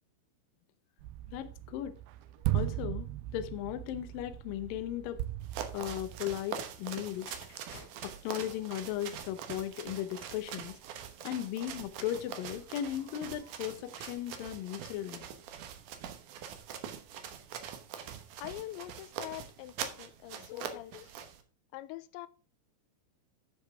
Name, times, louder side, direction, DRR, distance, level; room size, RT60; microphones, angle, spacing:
sound 1, 1.0-6.4, right 15 dB, 85° right, 2.2 m, -37 dB
voice 1, 1.3-2.0 2.5-5.2 5.7-7.3 8.0-10.8 11.2-15.3, left 12 dB, 75° left, 2.1 m, -37 dB
sound 2, 5.4-21.4, right 8 dB, 70° right, 1.9 m, -43 dB
sound 3, 6.9-10.7 11.4-11.7, left 3 dB, 30° left, 2.0 m, -57 dB
voice 2, 18.4-21.3 21.7-22.3, left 16 dB, 90° left, 2.9 m, -44 dB
11.0 x 7.2 x 3.5 m
omnidirectional pair, 5.1 m